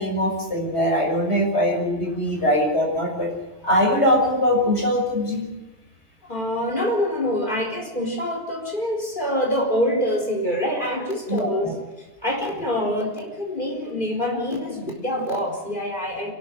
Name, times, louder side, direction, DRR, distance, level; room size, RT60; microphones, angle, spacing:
voice 1, 0.0-3.3 3.6-5.5 11.3-11.7, equal, 70° left, 0 dB, 6.5 m, -22 dB
voice 2, 6.3-11.7 12.2-16.3, equal, 45° left, 1 dB, 4.6 m, -25 dB
27.0 x 12.0 x 9.2 m, 1.1 s
omnidirectional pair, 1.2 m